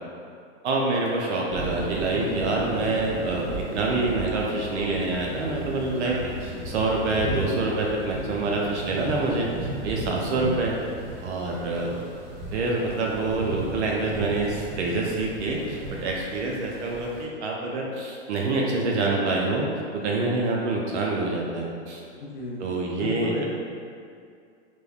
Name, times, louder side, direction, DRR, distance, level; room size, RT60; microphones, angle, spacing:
voice 1, 0.6-6.1 6.4-10.7 11.2-12.0 12.5-19.7 19.9-22.0 22.6-23.4, right 2 dB, 70° right, -2 dB, 0.5 m, -26 dB
sound 1, 1.5-17.2, right 1 dB, 35° right, 1.4 m, -36 dB
voice 2, 22.2-22.6 23.0-23.4, left 2 dB, 45° left, -5 dB, 0.5 m, -33 dB
3.1 x 2.1 x 2.3 m, 2.3 s
hypercardioid pair, 110°, 35 cm